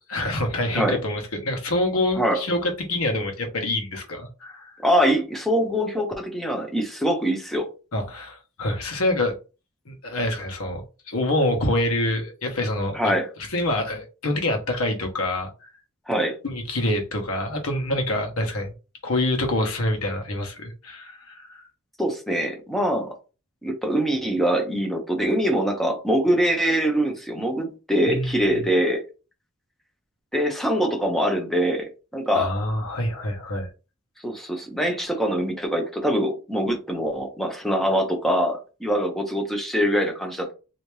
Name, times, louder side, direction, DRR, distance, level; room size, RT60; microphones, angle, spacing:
voice 1, 0.1-4.7 7.9-9.3 9.9-13.1 13.5-15.5 16.4-18.7 19.0-21.7 28.1-28.6 32.3-33.7, left 1 dB, 80° left, 1.1 m, -26 dB
voice 2, 4.8-7.7 12.9-13.3 16.1-16.3 22.0-23.1 23.6-29.0 30.3-32.5 34.2-40.5, equal, ahead, 0.9 m, -23 dB
3.3 x 2.8 x 3.1 m
head